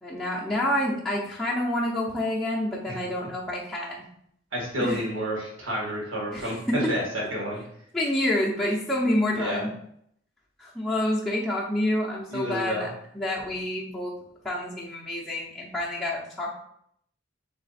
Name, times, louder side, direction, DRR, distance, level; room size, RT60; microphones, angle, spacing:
voice 1, 0.0-4.0 4.8-5.0 6.3-6.9 7.9-9.7 10.6-12.9 13.1-14.1 14.4-16.5, left 1 dB, 5° left, -7 dB, 0.6 m, -28 dB
voice 2, 4.5-7.6 9.3-9.6 12.3-12.9, equal, 90° right, -3 dB, 1.8 m, -30 dB
3.8 x 3.2 x 4.1 m, 0.70 s
head